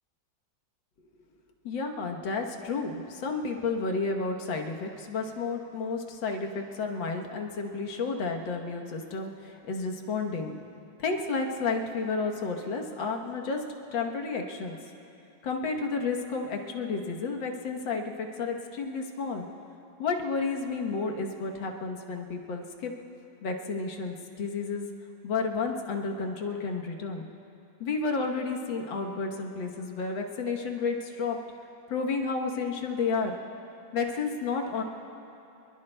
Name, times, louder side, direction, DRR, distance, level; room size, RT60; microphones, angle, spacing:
voice 1, 1.7-10.6 11.0-13.6 13.9-14.8 15.4-19.5 20.0-22.9 23.4-24.9 25.2-27.3 27.8-31.4 31.9-33.4 33.9-34.8, left 4 dB, 85° left, 2 dB, 1.9 m, -31 dB
25.0 x 21.5 x 2.2 m, 2.7 s
omnidirectional pair, 2.0 m